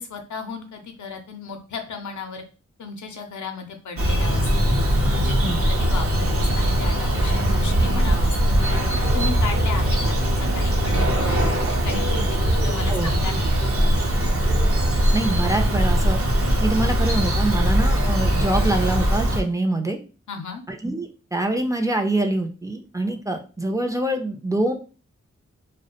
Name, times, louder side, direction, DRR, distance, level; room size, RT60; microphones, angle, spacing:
voice 1, 0.0-2.4 2.8-4.8 5.1-13.4 20.3-20.6, left 5 dB, 90° left, 4 dB, 0.5 m, -35 dB
Bird vocalization bird call bird song, 4.0-19.4, equal, 50° right, 0.7 m, -21 dB
voice 2, 15.1-16.2 16.6-20.0 20.7-24.7, right 2 dB, 10° right, 3 dB, 0.4 m, -25 dB
2.4 x 2.1 x 2.8 m, 0.35 s
cardioid pair, 45°, 29 cm